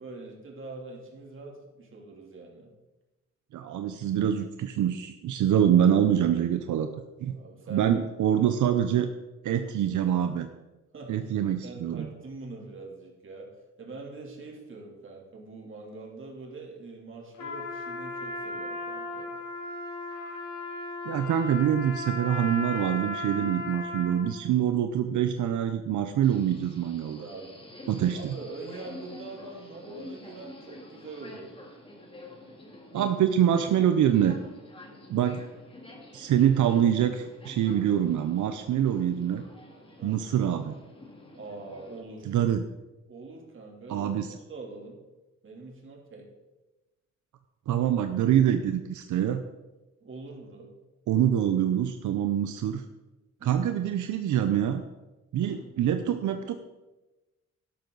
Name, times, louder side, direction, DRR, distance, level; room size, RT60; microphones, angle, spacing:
voice 1, 0.0-2.7 7.3-8.0 10.9-11.3 11.6-13.5 13.8-19.3 27.2-27.6 28.1-31.6 40.0-40.2 41.3-42.4 43.1-45.0 45.4-46.3 50.0-50.7 53.4-53.7 55.4-55.7, right 3 dB, 45° right, -1 dB, 3.1 m, -43 dB
voice 2, 3.5-6.9 7.2-7.4 7.7-9.1 9.4-10.5 11.1-12.1 21.0-27.2 27.9-28.4 32.9-34.4 35.1-35.4 36.1-39.4 40.0-40.8 42.3-42.6 43.9-44.3 47.7-49.4 51.1-52.8 53.4-54.8 55.3-56.6, right 9 dB, 85° right, 8 dB, 0.7 m, -25 dB
Trumpet, 17.3-24.4, left 2 dB, 90° left, 3.3 m, -36 dB
Subway metro underground, 26.2-42.0, left 1 dB, 20° left, 2.3 m, -48 dB
12.0 x 12.0 x 4.0 m, 1.1 s
cardioid pair, 130°, 29 cm